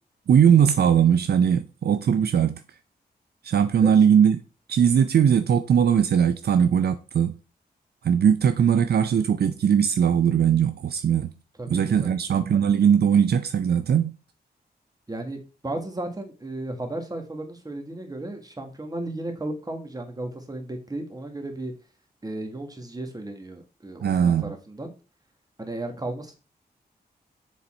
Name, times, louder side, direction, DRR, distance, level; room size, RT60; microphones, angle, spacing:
voice 1, 0.3-2.6 3.4-4.4 4.7-7.3 8.0-11.3 11.7-14.1 24.0-24.5, right 8 dB, 70° right, 0.5 m, -20 dB
voice 2, 11.6-12.4 15.1-21.7 22.2-24.9 25.6-26.4, right 2 dB, 20° right, 1.6 m, -34 dB
7.0 x 4.1 x 4.3 m
cardioid pair, 85°, 17 cm